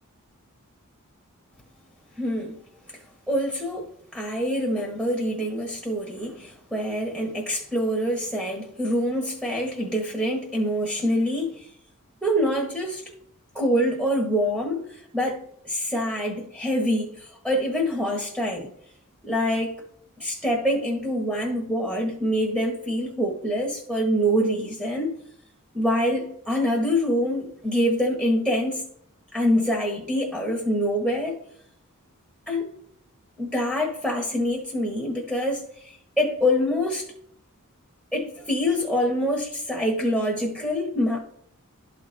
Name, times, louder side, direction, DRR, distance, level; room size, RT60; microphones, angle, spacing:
voice 1, 2.2-2.6 3.3-11.7 12.2-13.0 13.5-18.7 19.2-19.8 20.2-25.1 25.7-28.9 29.3-31.4 32.5-32.7 33.4-37.1 38.1-41.2, equal, 5° right, 1.2 m, -25 dB
12.5 x 4.2 x 3.3 m
head